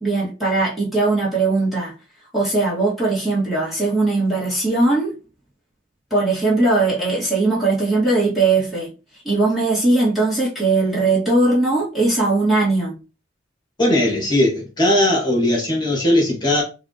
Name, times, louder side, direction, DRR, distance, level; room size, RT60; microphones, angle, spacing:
voice 1, 0.0-1.9 2.3-5.1 6.1-8.9 9.2-13.0, right 2 dB, ahead, 1.8 m, -19 dB
voice 2, 13.8-16.6, left 1 dB, 20° left, 1.8 m, -18 dB
5.6 x 2.6 x 2.9 m
head